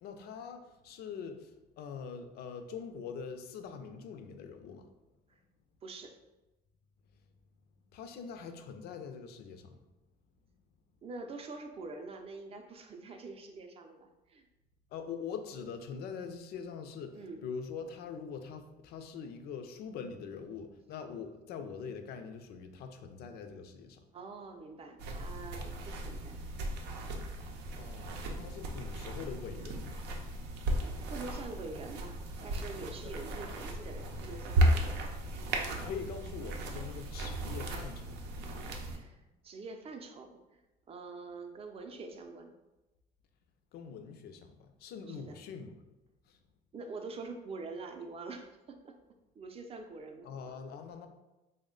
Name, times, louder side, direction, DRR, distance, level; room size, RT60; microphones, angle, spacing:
voice 1, 0.0-4.9 7.9-9.8 14.9-17.2 17.4-24.0 27.8-30.0 33.0-33.1 35.8-38.2 43.7-45.7 46.3-46.4 50.2-51.1, left 6 dB, 70° left, 7 dB, 0.4 m, -43 dB
voice 2, 5.8-6.2 11.0-14.5 17.1-17.4 24.1-26.4 31.1-35.1 38.8-40.6 40.9-42.5 45.1-45.4 46.7-49.0 49.3-50.3 50.9-51.0, right 3 dB, 35° right, 5 dB, 0.5 m, -45 dB
sound 1, 25.0-39.0, right 1 dB, 90° right, 0.5 m, -35 dB
3.4 x 2.1 x 3.7 m, 1.0 s
cardioid pair, 110°, 17 cm